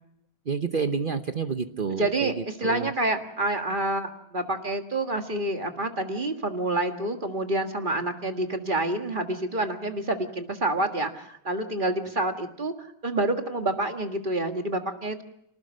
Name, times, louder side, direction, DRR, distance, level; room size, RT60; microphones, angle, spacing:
voice 1, 0.5-2.3 2.6-2.9, right 5 dB, 60° right, 8 dB, 0.5 m, -29 dB
voice 2, 1.9-12.7 13.0-15.2, right 2 dB, 25° right, 5 dB, 1.6 m, -28 dB
26.5 x 19.0 x 6.3 m, 0.74 s
omnidirectional pair, 2.2 m